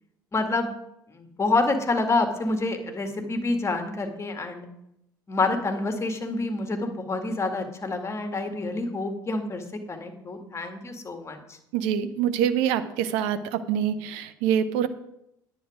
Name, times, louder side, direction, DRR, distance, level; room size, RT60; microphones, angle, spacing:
voice 1, 0.3-0.7 1.1-4.7 5.3-11.6, left 3 dB, 25° left, 6 dB, 2.0 m, -27 dB
voice 2, 11.7-14.9, right 9 dB, 65° right, 12 dB, 0.8 m, -25 dB
10.0 x 8.4 x 5.0 m, 0.80 s
hypercardioid pair, 65°, 11 cm